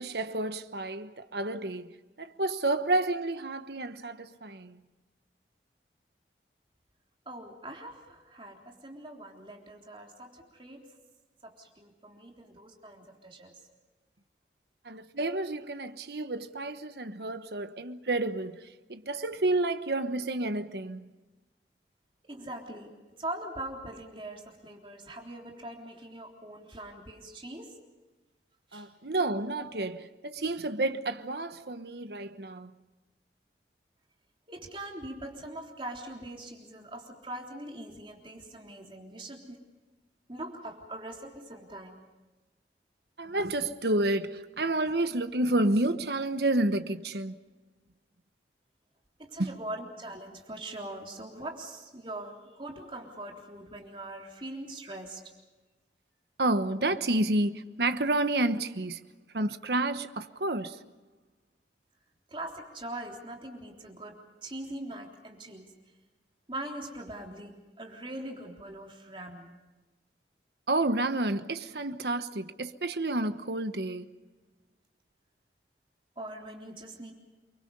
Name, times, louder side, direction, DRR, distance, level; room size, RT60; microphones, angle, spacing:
voice 1, 0.0-1.9 2.2-4.8 14.8-21.1 28.7-32.8 43.2-47.4 49.4-49.6 56.4-59.0 59.3-60.8 70.7-74.1, right 2 dB, 70° right, 1.2 m, -30 dB
voice 2, 7.3-10.9 11.4-13.6 22.3-27.8 28.7-28.9 34.5-39.6 40.3-42.0 49.2-55.2 62.3-65.7 66.5-69.5 76.2-77.1, right 1 dB, 30° right, 3.6 m, -42 dB
29.5 x 24.0 x 5.5 m
head